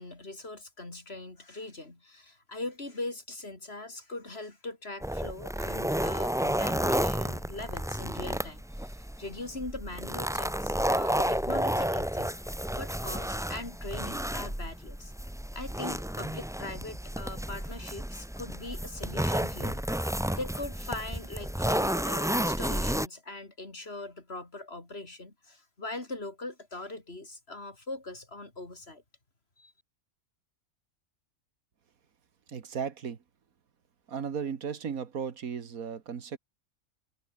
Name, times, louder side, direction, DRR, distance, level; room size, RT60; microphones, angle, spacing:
voice 1, 0.0-12.3 12.8-15.1 15.5-29.0 29.6-29.7, left 2 dB, 45° left, 3.9 m, -41 dB
sound 1, 5.0-23.1, equal, 5° right, 0.6 m, -31 dB
voice 2, 32.5-33.2 34.1-36.4, right 7 dB, 85° right, 2.0 m, -35 dB
omnidirectional pair, 1.4 m